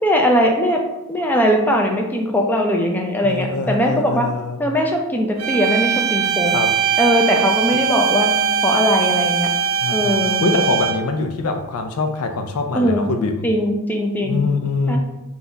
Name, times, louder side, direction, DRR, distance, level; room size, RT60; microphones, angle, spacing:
voice 1, 0.0-0.8 1.1-4.3 4.6-6.5 7.0-8.4 8.6-9.5 9.9-10.4 12.7-13.1 13.4-14.4 14.9-15.0, equal, 10° left, 1 dB, 0.5 m, -19 dB
voice 2, 3.2-4.6 6.5-6.8 9.8-13.5 14.2-15.0, left 3 dB, 75° left, 6 dB, 0.5 m, -23 dB
sound 1, 5.4-11.1, right 7 dB, 65° right, 0.5 m, -20 dB
4.0 x 2.4 x 3.9 m, 0.93 s
head